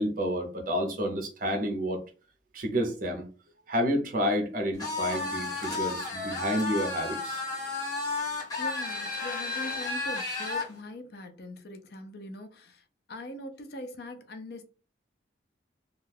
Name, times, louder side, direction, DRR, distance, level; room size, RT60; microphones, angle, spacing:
voice 1, 0.0-2.0 2.5-3.3 3.7-7.4, equal, 45° right, 0.6 m, -30 dB
sound 1, 4.8-10.7, left 3 dB, 20° left, 0.8 m, -32 dB
voice 2, 8.6-14.6, left 1 dB, 55° left, 0.5 m, -42 dB
2.4 x 2.2 x 3.2 m
head